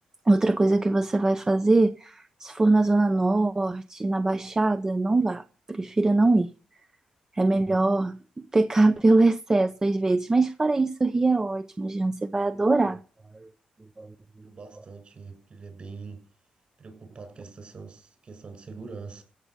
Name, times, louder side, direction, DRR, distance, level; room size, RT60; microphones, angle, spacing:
voice 1, 0.3-6.5 7.3-8.2 8.5-13.0 14.0-14.1, right 2 dB, 25° right, 0.8 m, -22 dB
voice 2, 14.4-16.2 16.8-19.2, right 4 dB, 50° right, 6.6 m, -43 dB
16.0 x 7.1 x 8.5 m
cardioid pair, 85°, 2 cm